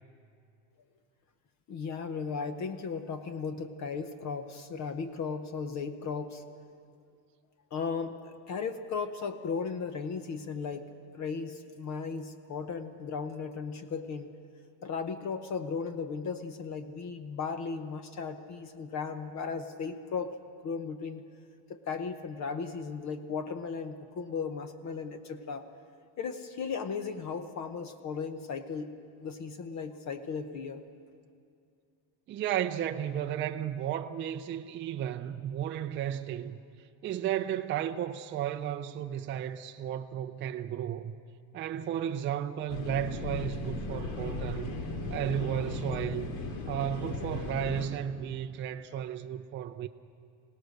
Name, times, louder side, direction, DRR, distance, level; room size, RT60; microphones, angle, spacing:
voice 1, 1.7-6.4 7.7-14.3 14.8-20.4 20.6-21.2 21.7-25.6 26.2-28.9 29.2-30.8, left 5 dB, 35° left, 0.9 m, -36 dB
voice 2, 32.3-36.6 37.0-41.1 41.5-44.8 45.1-49.9, right 10 dB, 25° right, 0.4 m, -34 dB
sound 1, 42.7-47.9, left 2 dB, 60° left, 2.4 m, -36 dB
26.0 x 18.0 x 6.6 m
cardioid pair, 175°, 46 cm